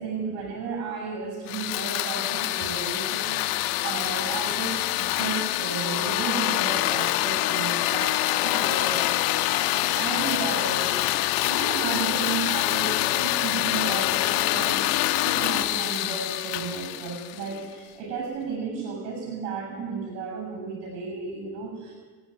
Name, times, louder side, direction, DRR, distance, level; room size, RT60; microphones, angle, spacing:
voice 1, 0.0-9.2 9.6-10.9 11.4-14.9 15.2-21.9, right 5 dB, 65° right, 3 dB, 6.9 m, -33 dB
sound 1, 1.5-17.7, left 16 dB, 70° left, 1.4 m, -25 dB
29.0 x 10.5 x 9.7 m, 1.4 s
supercardioid pair, 95°, 45 cm